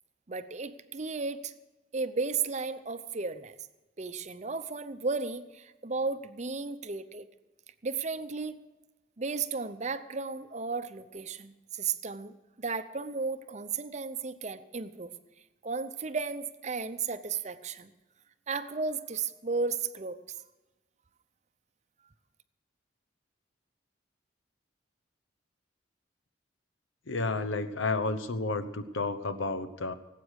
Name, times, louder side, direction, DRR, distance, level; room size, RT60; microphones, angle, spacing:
voice 1, 0.3-1.5 1.9-3.5 4.0-7.3 7.8-8.6 9.2-15.1 15.6-17.9 18.5-20.2, right 4 dB, 35° right, 11 dB, 0.7 m, -34 dB
voice 2, 27.1-29.9, left 3 dB, 85° left, 11 dB, 1.0 m, -31 dB
18.0 x 8.4 x 6.4 m, 1.1 s
head